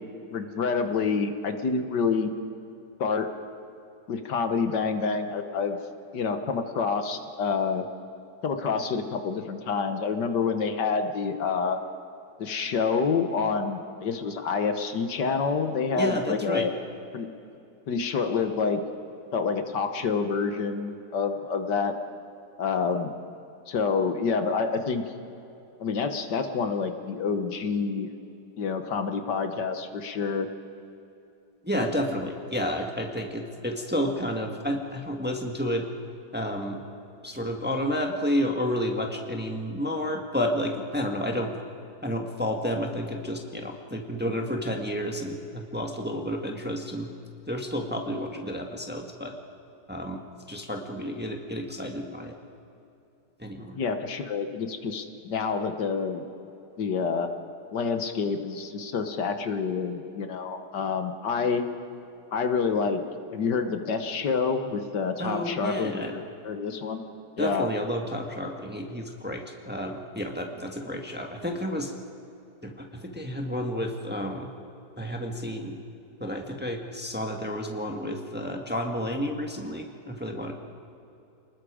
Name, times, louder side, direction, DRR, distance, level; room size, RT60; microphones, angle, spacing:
voice 1, 0.3-2.3 3.0-3.3 4.1-5.8 6.1-7.9 8.4-11.8 12.4-16.7 17.1-17.3 17.9-18.8 19.3-21.9 22.6-23.1 23.7-25.0 25.8-28.1 28.6-30.5 53.8-56.2 56.8-57.3 57.7-61.7 62.3-63.0 63.3-67.0 67.4-67.7, left 5 dB, 75° left, 7 dB, 1.8 m, -27 dB
voice 2, 15.9-16.7 31.6-35.9 36.3-36.8 37.2-41.5 42.0-47.1 47.5-49.3 49.9-52.4 53.4-53.8 65.2-66.1 67.4-71.9 72.6-74.5 75.0-75.8 76.2-80.5, equal, 5° right, 2 dB, 1.5 m, -31 dB
29.0 x 20.0 x 5.0 m, 2.7 s
omnidirectional pair, 1.9 m